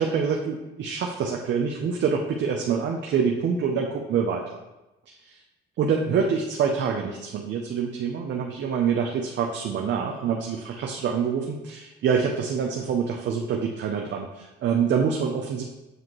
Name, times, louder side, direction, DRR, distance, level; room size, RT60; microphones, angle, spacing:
voice 1, 0.0-4.6 5.1-5.2 5.8-15.6, right 6 dB, 65° right, 1 dB, 0.7 m, -26 dB
7.7 x 5.0 x 3.1 m, 1.0 s
cardioid pair, 90°, 20 cm